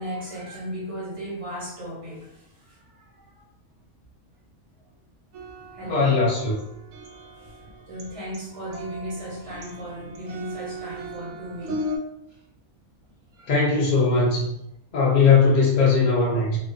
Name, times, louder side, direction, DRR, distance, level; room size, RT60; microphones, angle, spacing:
voice 1, 0.0-3.5 5.6-6.2 7.4-11.9 12.3-12.4 13.3-13.5, equal, 40° right, -5 dB, 0.5 m, -36 dB
sound 1, 5.3-12.0, equal, 65° right, 0.8 m, -37 dB
voice 2, 5.9-6.5 13.5-14.5 14.9-16.6, left 4 dB, 55° left, -5 dB, 0.5 m, -19 dB
2.5 x 2.0 x 2.4 m, 0.78 s
omnidirectional pair, 1.5 m